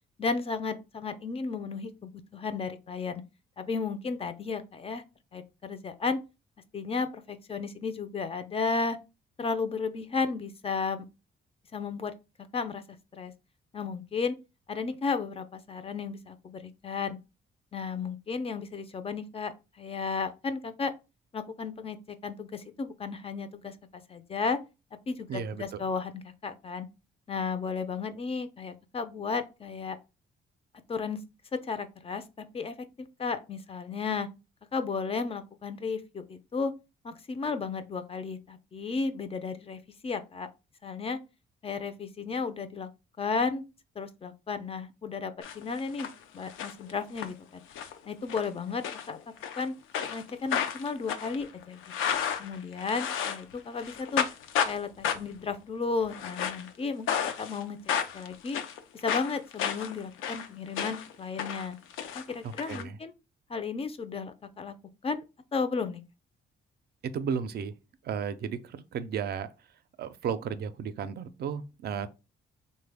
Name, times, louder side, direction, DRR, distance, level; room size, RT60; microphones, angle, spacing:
voice 1, 0.2-3.2 3.6-5.0 5.3-6.2 6.7-9.0 9.4-11.0 11.7-12.1 12.5-12.8 13.1-13.3 13.7-14.4 14.7-17.2 17.7-20.9 21.3-24.6 25.1-26.9 27.3-30.0 30.9-31.2 31.5-32.2 32.5-32.7 33.2-34.3 34.7-36.7 37.0-40.5 40.8-41.2 41.6-42.9 43.2-43.6 44.0-47.6 48.1-49.2 49.6-49.7 50.1-51.8 52.4-54.3 54.7-57.1 57.4-57.8 58.1-58.6 59.0-61.8 62.1-63.1 63.5-64.8 65.0-65.2 65.5-66.0, left 4 dB, 30° left, 0.4 m, -33 dB
voice 2, 25.3-25.8 62.4-63.0 67.0-67.7 68.0-69.5 70.0-72.1, right 7 dB, 55° right, 0.4 m, -34 dB
sound 1, 45.4-46.1 46.4-47.3 47.7-48.0 48.3-48.5 48.8-49.6 49.9-53.5 53.8-54.8 55.0-55.4 56.0-56.7 57.1-57.6 57.9-61.1 61.4-62.8, left 8 dB, 90° left, 0.5 m, -32 dB
3.2 x 2.1 x 3.3 m
cardioid pair, 90°, 20 cm